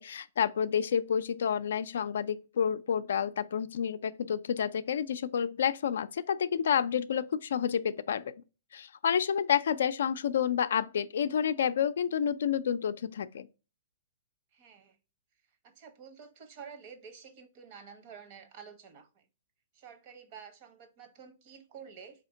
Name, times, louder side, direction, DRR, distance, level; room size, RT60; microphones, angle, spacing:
voice 1, 0.0-8.3 8.7-13.5, left 8 dB, 75° left, 0.3 m, -29 dB
voice 2, 14.5-15.0 15.6-19.3 19.7-22.2, right 6 dB, 45° right, 0.9 m, -50 dB
4.2 x 2.8 x 3.8 m
hypercardioid pair, 140°, 0 cm